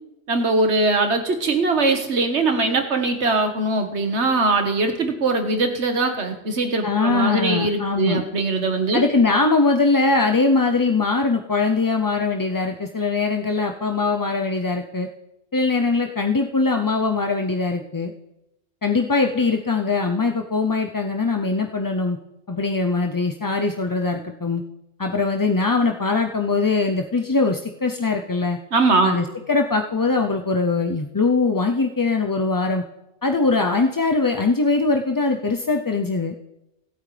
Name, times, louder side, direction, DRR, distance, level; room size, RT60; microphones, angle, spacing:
voice 1, 0.3-9.0 28.7-29.2, right 3 dB, 80° right, 5 dB, 1.8 m, -21 dB
voice 2, 6.8-8.2 8.9-15.1 15.5-18.1 18.8-22.2 22.5-24.6 25.0-28.6 29.0-32.8 33.2-36.3, left 3 dB, 25° left, 4 dB, 0.4 m, -21 dB
24.0 x 8.9 x 3.3 m, 0.91 s
omnidirectional pair, 1.1 m